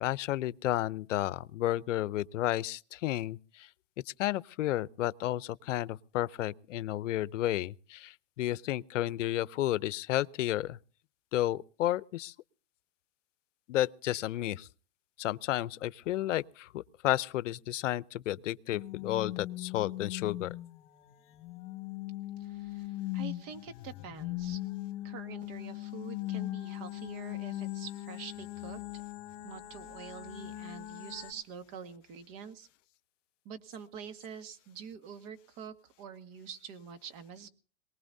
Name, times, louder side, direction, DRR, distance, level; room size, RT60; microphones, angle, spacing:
voice 1, 0.0-3.4 4.2-8.1 8.4-10.8 11.3-12.3 13.7-14.7 15.2-20.5, left 14 dB, 85° left, 0.6 m, -32 dB
sound 1, 18.7-31.3, left 16 dB, 50° left, 2.0 m, -40 dB
voice 2, 22.4-24.6 25.0-29.0 29.4-32.7 33.4-37.5, right 7 dB, 40° right, 1.7 m, -46 dB
23.0 x 19.0 x 2.7 m
supercardioid pair, 135°, 36 cm